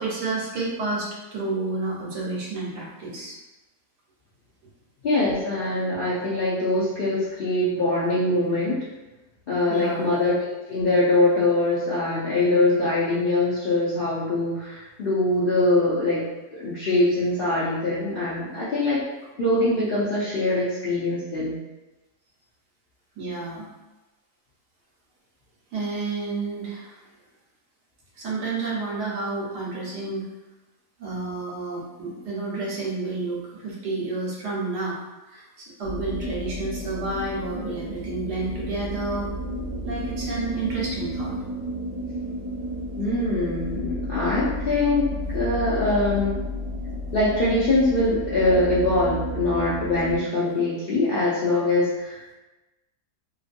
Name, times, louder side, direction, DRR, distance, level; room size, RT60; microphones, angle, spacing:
voice 1, 0.0-3.4 9.7-10.1 23.2-23.7 25.7-27.0 28.2-30.2 31.0-35.0 35.3-39.3 39.8-41.3, right 3 dB, 80° right, -4 dB, 1.4 m, -30 dB
voice 2, 5.0-8.8 9.5-16.2 16.5-19.0 19.4-21.6 43.0-46.4 47.1-52.3, left 2 dB, 80° left, -9 dB, 0.5 m, -23 dB
sound 1, 35.8-50.2, equal, 55° right, 1.1 m, -32 dB
2.9 x 2.7 x 2.5 m, 1.1 s
omnidirectional pair, 1.7 m